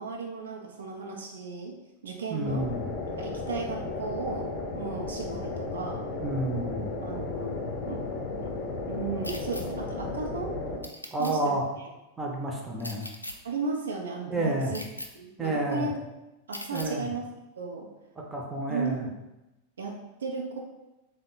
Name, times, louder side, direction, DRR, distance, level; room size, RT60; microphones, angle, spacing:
voice 1, 0.0-1.8 2.0-2.7 3.1-6.1 7.0-7.6 7.9-8.1 8.3-8.5 8.9-10.6 11.2-11.5 13.4-14.8 15.2-15.9 16.5-17.2 17.6-17.9 18.7-19.1 19.8-20.6, right 4 dB, 65° right, 1 dB, 0.4 m, -35 dB
voice 2, 2.3-2.9 6.2-6.9 11.1-11.6 12.2-13.0 14.3-14.7 15.4-15.9 16.7-17.1 18.2-19.1, right 1 dB, 15° right, -1 dB, 0.6 m, -30 dB
sound 1, 2.5-10.8, left 3 dB, 35° left, 0.7 m, -34 dB
sound 2, 9.2-9.6 10.8-11.3 12.8-13.3 14.7-15.1 16.5-16.9, left 1 dB, 85° left, 0.3 m, -38 dB
3.6 x 2.1 x 3.7 m, 0.98 s
figure-of-eight pair, 90°, 0 cm